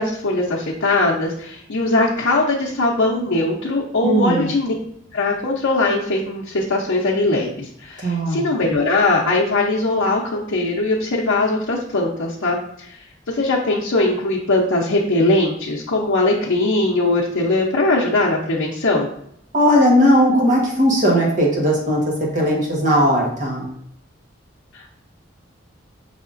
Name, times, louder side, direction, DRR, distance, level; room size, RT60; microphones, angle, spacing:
voice 1, 0.0-4.7 5.1-19.1 24.7-24.9, left 2 dB, 80° left, -4 dB, 0.7 m, -20 dB
voice 2, 4.0-4.5 8.0-8.4 19.5-22.0 22.3-23.7, equal, 40° right, -2 dB, 1.2 m, -17 dB
5.6 x 3.5 x 2.5 m, 0.70 s
head